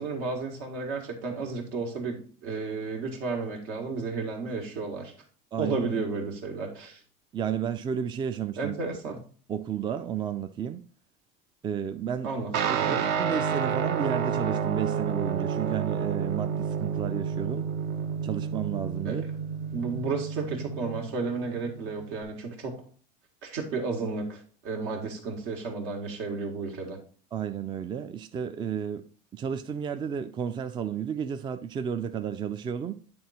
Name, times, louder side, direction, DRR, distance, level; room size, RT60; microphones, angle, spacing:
voice 1, 0.0-5.1 5.6-7.0 8.6-9.2 12.2-12.5 12.8-13.1 19.0-19.3 19.7-22.8 23.4-27.0, right 4 dB, 75° right, 1.8 m, -32 dB
voice 2, 7.3-8.7 9.1-9.2 9.5-10.8 11.6-12.3 12.7-17.7 18.2-19.2 27.3-29.0 29.3-32.9, right 8 dB, 20° right, 0.4 m, -32 dB
Guitar, 12.5-22.2, right 7 dB, 55° right, 0.8 m, -30 dB
8.6 x 3.7 x 4.2 m
supercardioid pair, 120°, 21 cm